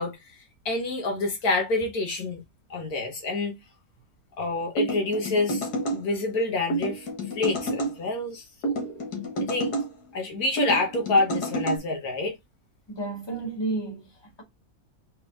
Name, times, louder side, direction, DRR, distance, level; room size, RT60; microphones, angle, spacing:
voice 1, 0.0-2.4 2.7-3.6 4.4-7.1 7.3-8.9 9.4-9.7 10.1-12.4, left 2 dB, 75° left, 1.6 m, -27 dB
sound 1, 4.8-6.0 6.7-7.9 8.6-9.9 10.6-11.8, right 1 dB, 90° left, 2.1 m, -29 dB
voice 2, 12.9-14.4, right 2 dB, 15° left, 1.7 m, -32 dB
4.4 x 3.4 x 3.4 m
omnidirectional pair, 1.6 m